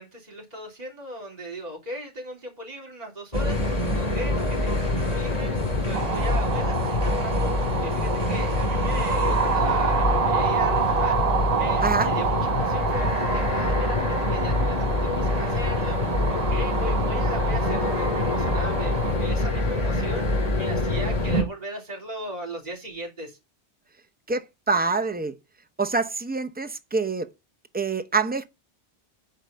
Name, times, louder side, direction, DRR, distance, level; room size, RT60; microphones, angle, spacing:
voice 1, 0.0-20.2 20.5-23.4, equal, 35° right, 3.5 m, -37 dB
sound 1, 3.3-21.4, left 2 dB, 35° left, 2.0 m, -25 dB
sound 2, 5.9-19.1, right 7 dB, 60° right, 1.1 m, -28 dB
voice 2, 24.3-25.3 25.8-27.3 27.7-28.4, right 4 dB, 10° right, 0.7 m, -25 dB
9.3 x 4.9 x 6.8 m
omnidirectional pair, 1.2 m